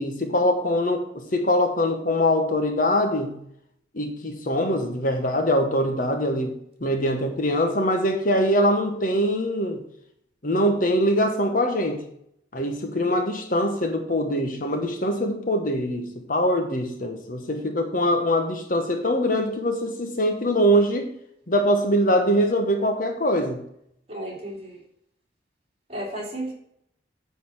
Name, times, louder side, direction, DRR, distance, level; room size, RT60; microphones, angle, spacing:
voice 1, 0.0-3.4 3.9-9.8 10.4-12.1 12.5-21.1 21.5-23.6, equal, 45° left, 6 dB, 1.1 m, -23 dB
voice 2, 24.1-24.8 25.9-26.5, right 1 dB, 30° right, -2 dB, 3.1 m, -33 dB
9.7 x 4.2 x 7.2 m, 0.73 s
head